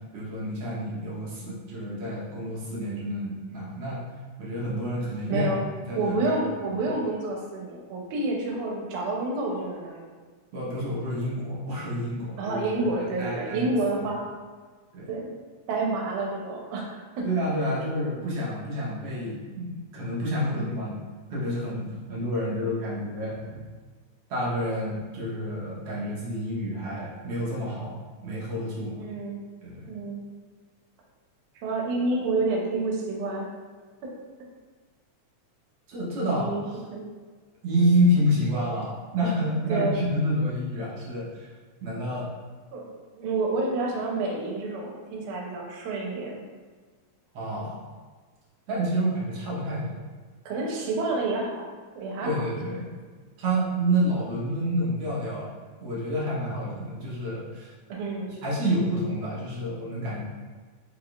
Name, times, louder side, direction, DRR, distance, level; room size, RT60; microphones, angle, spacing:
voice 1, 0.1-4.0 4.4-5.6 5.9-6.8 10.5-12.8 13.2-13.7 14.0-14.1 14.9-15.1 17.2-21.0 21.3-23.6 24.3-29.0 29.6-29.9 35.9-36.8 37.6-41.5 41.8-42.3 47.3-47.9 48.7-50.0 52.2-53.0 53.4-55.5 55.8-57.7 58.4-60.2, equal, 65° right, -7 dB, 1.7 m, -29 dB
voice 2, 5.3-5.6 6.0-10.1 12.4-14.2 15.1-15.3 15.7-17.3 22.5-22.7 29.0-29.4 29.9-30.2 31.6-33.5 34.0-34.1 36.2-37.1 39.7-40.0 42.7-46.4 50.5-51.7 52.0-52.3 57.9-58.3, right 3 dB, 85° right, -1 dB, 2.1 m, -29 dB
5.0 x 3.5 x 2.3 m, 1.5 s
omnidirectional pair, 3.4 m